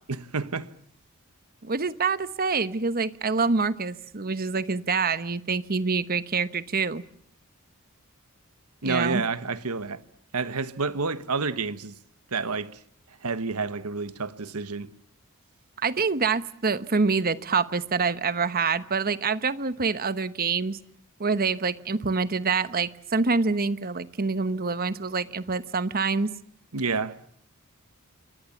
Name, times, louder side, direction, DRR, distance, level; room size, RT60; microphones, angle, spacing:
voice 1, 0.1-0.7 8.8-10.0 10.3-12.0 12.3-12.8 13.2-14.9 26.7-27.2, right 4 dB, 90° right, 1.3 m, -29 dB
voice 2, 1.6-7.0 8.8-9.2 15.8-20.8 21.2-26.3, right 4 dB, 45° right, 1.1 m, -26 dB
28.5 x 23.0 x 7.2 m
head